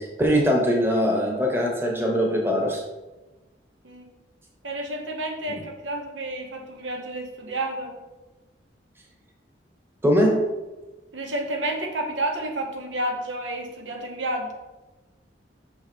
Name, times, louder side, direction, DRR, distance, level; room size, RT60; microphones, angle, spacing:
voice 1, 0.0-2.8 5.5-5.6 10.0-10.4, equal, 10° right, 0 dB, 1.1 m, -22 dB
voice 2, 4.6-8.0 11.1-14.5, right 1 dB, 80° right, 3 dB, 1.0 m, -30 dB
5.9 x 4.7 x 4.5 m, 1.1 s
head